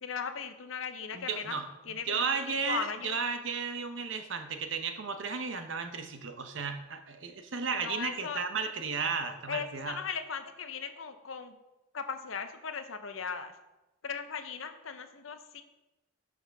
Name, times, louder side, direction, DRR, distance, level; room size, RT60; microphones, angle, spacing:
voice 1, 0.0-3.2 7.7-8.4 9.5-11.5 11.9-13.5 14.0-15.6, left 6 dB, 85° left, 8 dB, 0.8 m, -38 dB
voice 2, 1.1-1.6 2.1-10.0, right 5 dB, 65° right, 7 dB, 0.8 m, -34 dB
11.0 x 6.3 x 3.5 m, 1.0 s
head